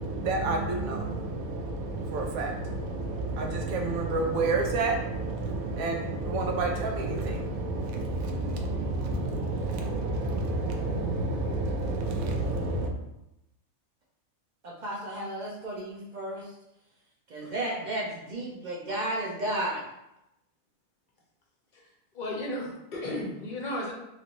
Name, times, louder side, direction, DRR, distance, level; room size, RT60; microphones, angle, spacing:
voice 1, 0.0-12.9, right 2 dB, 85° right, 2 dB, 1.0 m, -29 dB
voice 2, 14.6-16.4 17.3-19.8, right 1 dB, 60° right, -3 dB, 0.5 m, -33 dB
voice 3, 17.4-17.9 21.7-21.9 22.1-23.9, left 1 dB, 50° left, -2 dB, 0.6 m, -35 dB
3.1 x 2.5 x 2.9 m, 0.88 s
omnidirectional pair, 1.4 m